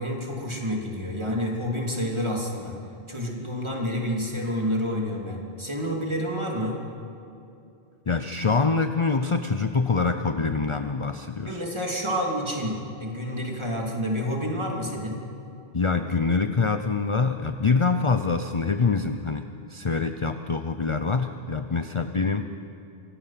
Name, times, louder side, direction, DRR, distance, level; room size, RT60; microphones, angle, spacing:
voice 1, 0.0-2.8 3.1-6.8 11.4-15.2, equal, 25° right, -1 dB, 3.0 m, -29 dB
voice 2, 8.1-11.6 15.7-19.4 19.7-22.5, left 4 dB, 35° left, 8 dB, 0.6 m, -25 dB
25.5 x 18.0 x 5.9 m, 2.7 s
omnidirectional pair, 1.1 m